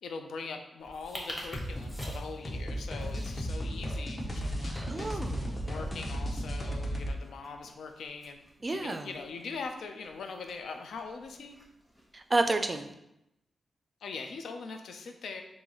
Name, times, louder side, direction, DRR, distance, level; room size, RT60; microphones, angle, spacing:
voice 1, 0.0-5.2 5.6-8.4 8.7-11.6 14.0-15.4, left 4 dB, 85° left, 5 dB, 0.4 m, -42 dB
sound 1, 0.8-12.9, equal, 5° left, 0.9 m, -50 dB
sound 2, 1.5-7.1, equal, 25° left, 0.6 m, -35 dB
voice 2, 4.7-5.6 8.6-9.1 12.1-12.9, right 2 dB, 30° right, 7 dB, 0.3 m, -30 dB
3.8 x 2.6 x 2.9 m, 0.86 s
cardioid pair, 80°, 0 cm